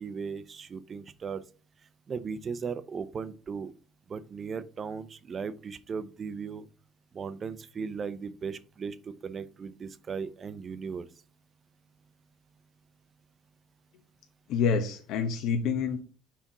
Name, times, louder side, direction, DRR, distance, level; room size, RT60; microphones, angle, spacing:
voice 1, 0.0-1.4 2.1-3.7 4.1-6.7 7.1-11.1, right 5 dB, 30° right, 14 dB, 0.6 m, -37 dB
voice 2, 14.5-16.0, left 6 dB, 65° left, 5 dB, 1.0 m, -27 dB
5.8 x 4.2 x 5.9 m, 0.38 s
cardioid pair, 140°, 0 cm